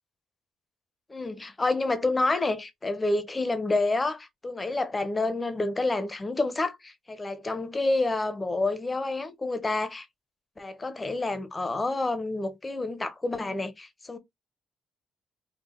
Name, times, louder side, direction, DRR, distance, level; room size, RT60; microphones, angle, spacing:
voice 1, 1.1-10.1 10.6-14.2, left 2 dB, 25° left, 0.8 m, -28 dB
3.8 x 2.3 x 3.7 m
cardioid pair, 90°, 0 cm